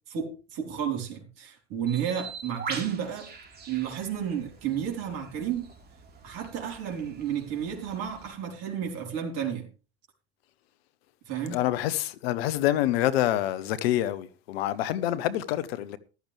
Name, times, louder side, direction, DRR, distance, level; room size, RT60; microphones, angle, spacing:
voice 1, 0.1-3.3 3.7-5.7 6.2-9.7 11.3-11.6, right 8 dB, 50° right, 4.3 m, -32 dB
Bird, 1.9-8.3, right 5 dB, 30° right, 4.2 m, -43 dB
voice 2, 11.5-16.0, left 13 dB, 70° left, 1.2 m, -27 dB
14.0 x 12.0 x 3.4 m
hypercardioid pair, 90°, 32 cm